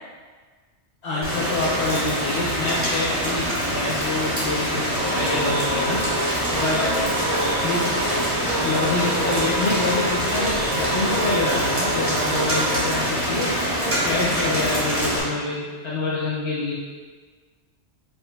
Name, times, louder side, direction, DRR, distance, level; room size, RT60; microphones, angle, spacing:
voice 1, 1.0-6.0 6.5-6.8 7.6-7.9 8.6-13.5 14.0-16.7, left 3 dB, 70° left, -7 dB, 0.9 m, -27 dB
Rain, 1.2-15.2, equal, 55° right, 1.9 m, -25 dB
sound 1, 5.0-12.9, right 1 dB, 90° right, 1.1 m, -28 dB
voice 2, 6.4-7.5 12.7-13.1 13.4-14.6, left 1 dB, 35° left, -8 dB, 1.6 m, -33 dB
5.2 x 4.3 x 2.2 m, 1.5 s
omnidirectional pair, 1.2 m